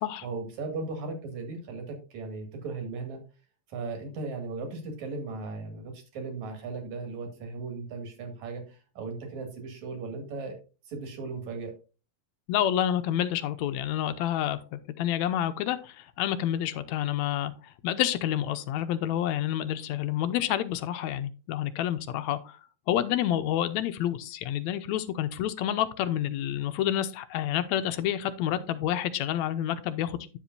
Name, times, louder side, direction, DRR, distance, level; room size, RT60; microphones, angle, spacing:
voice 1, 0.2-3.2 3.7-10.6 10.9-11.7, right 3 dB, 70° right, 5 dB, 3.5 m, -37 dB
voice 2, 12.5-22.6 22.9-30.4, left 11 dB, 80° left, 11 dB, 1.9 m, -29 dB
10.0 x 7.3 x 2.6 m, 0.32 s
omnidirectional pair, 3.4 m